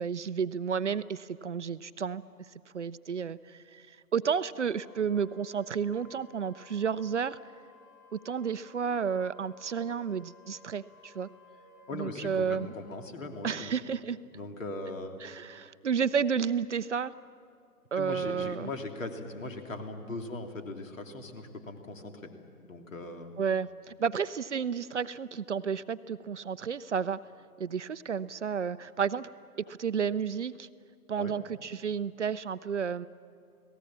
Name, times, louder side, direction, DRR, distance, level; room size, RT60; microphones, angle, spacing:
voice 1, 0.0-2.2 2.7-3.9 4.1-7.4 8.1-11.3 11.9-12.7 13.4-14.2 15.2-17.1 17.9-18.7 23.4-27.2 27.6-29.3 29.7-30.7 31.1-33.1, right 6 dB, 50° right, 15 dB, 0.6 m, -31 dB
Wind instrument woodwind instrument, 4.7-13.2, left 1 dB, 30° left, 4.7 m, -57 dB
voice 2, 11.9-13.7 14.3-15.2 17.9-22.3 22.6-23.4 31.2-31.3, left 2 dB, 55° left, 5 dB, 3.0 m, -39 dB
30.0 x 18.5 x 7.3 m, 2.2 s
figure-of-eight pair, 135°, 45 cm